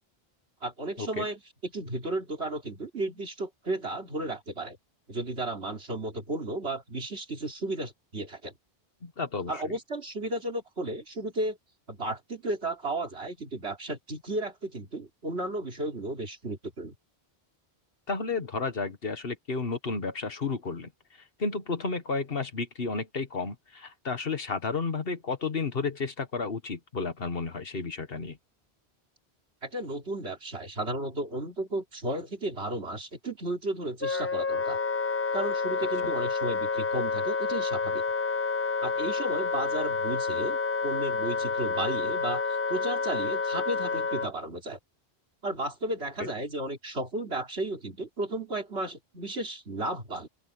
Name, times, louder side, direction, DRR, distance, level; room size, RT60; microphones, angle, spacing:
voice 1, 0.6-4.8 5.1-8.5 9.5-11.6 11.9-16.9 29.6-34.8 35.3-38.0 38.8-42.4 42.7-44.8 45.4-50.3, right 1 dB, 85° right, 3.7 m, -34 dB
voice 2, 9.0-9.6 18.1-20.9 21.4-28.4, left 4 dB, 60° left, 1.7 m, -32 dB
Wind instrument woodwind instrument, 34.0-44.3, left 4 dB, 15° left, 0.6 m, -29 dB
open air
omnidirectional pair, 1.1 m